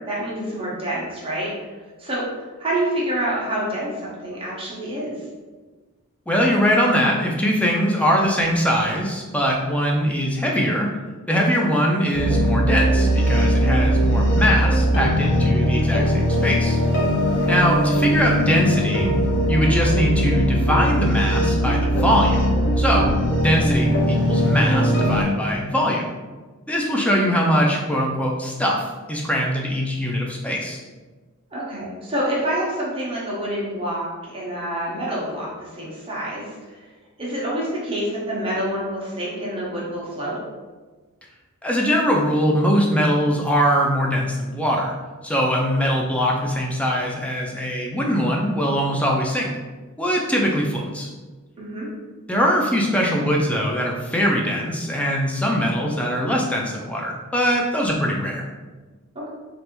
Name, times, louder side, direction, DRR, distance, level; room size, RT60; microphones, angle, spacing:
voice 1, 0.0-1.5 2.0-2.3 2.6-5.1 17.3-17.6 31.5-36.4 37.2-40.4 51.6-51.9 59.1-59.3, right 1 dB, 25° right, -6 dB, 0.8 m, -27 dB
voice 2, 6.3-10.9 11.3-16.8 17.5-19.1 19.5-22.4 22.8-23.1 23.4-26.1 26.7-30.8 41.6-44.9 45.2-49.5 50.0-51.1 52.3-58.5, equal, 5° left, -1 dB, 0.4 m, -22 dB
sound 1, 12.1-25.2, equal, 55° left, 0.6 m, -20 dB
3.3 x 2.5 x 3.0 m, 1.3 s
head